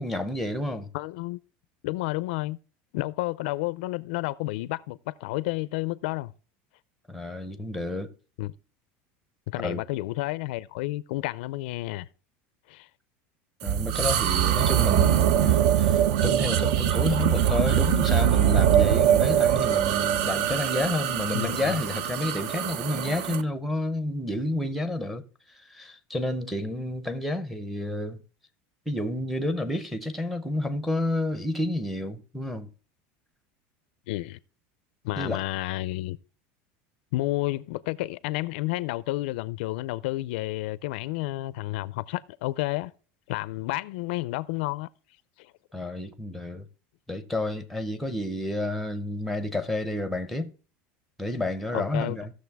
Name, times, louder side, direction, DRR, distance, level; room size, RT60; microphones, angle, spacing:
voice 1, 0.0-0.9 7.1-8.1 9.6-9.8 13.6-25.2 25.6-28.2 28.9-32.7 35.2-35.4 45.7-46.7 47.1-50.5 51.2-52.3, left 1 dB, ahead, 0.6 m, -30 dB
voice 2, 0.9-1.4 1.8-2.6 2.9-6.3 8.4-8.5 9.5-12.1 12.7-12.9 21.3-21.8 34.1-34.4 35.0-36.2 37.1-42.9 43.3-44.9 45.4-45.5 51.7-52.2, left 18 dB, 65° left, 0.4 m, -31 dB
sound 1, 13.6-23.4, right 10 dB, 55° right, 0.5 m, -23 dB
16.0 x 6.5 x 3.4 m
cardioid pair, 180°, 6 cm